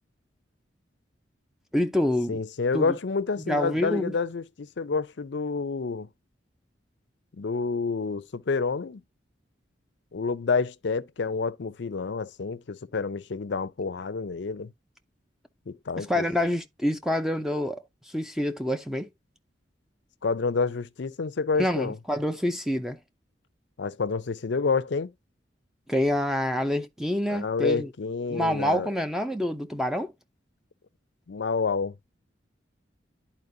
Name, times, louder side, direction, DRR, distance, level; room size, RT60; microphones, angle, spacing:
voice 1, 1.7-2.4 2.7-3.0 3.4-4.1 16.0-17.8 18.1-19.1 21.6-23.0 25.9-27.9 28.3-30.1, left 1 dB, ahead, 0.5 m, -27 dB
voice 2, 2.3-6.1 7.4-9.0 10.1-14.7 15.7-16.5 20.2-22.0 23.8-25.1 27.3-28.9 31.3-31.9, left 4 dB, 65° left, 0.5 m, -28 dB
11.0 x 4.3 x 2.7 m
head